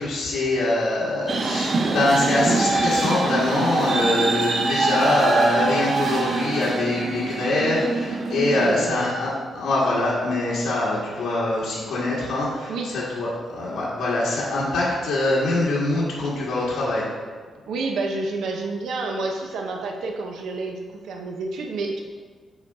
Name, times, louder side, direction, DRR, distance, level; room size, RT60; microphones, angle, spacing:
voice 1, 0.0-17.0, left 2 dB, 75° left, -8 dB, 2.0 m, -23 dB
sound 1, 1.3-8.9, right 3 dB, 45° right, 0.7 m, -24 dB
voice 2, 8.6-9.1 12.7-12.9 17.7-22.0, right 3 dB, 85° right, 2 dB, 0.9 m, -29 dB
7.1 x 5.2 x 4.2 m, 1.5 s
wide cardioid pair, 150°, 0 cm